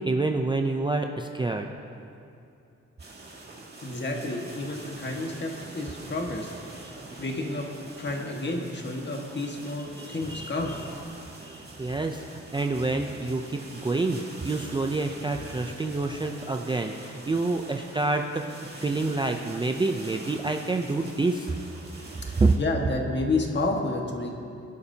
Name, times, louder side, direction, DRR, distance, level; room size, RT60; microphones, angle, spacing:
voice 1, 0.0-1.7 6.8-7.0 10.0-10.8 11.4-21.5 22.4-22.5, right 3 dB, 15° right, 3 dB, 0.4 m, -28 dB
sound 1, 3.0-22.6, right 2 dB, 35° right, 2.2 m, -44 dB
voice 2, 3.8-6.5 7.2-7.7 8.0-10.7 22.3-24.3, left 2 dB, 35° left, 1 dB, 1.6 m, -30 dB
23.0 x 11.5 x 2.8 m, 2.7 s
wide cardioid pair, 135°, 30 cm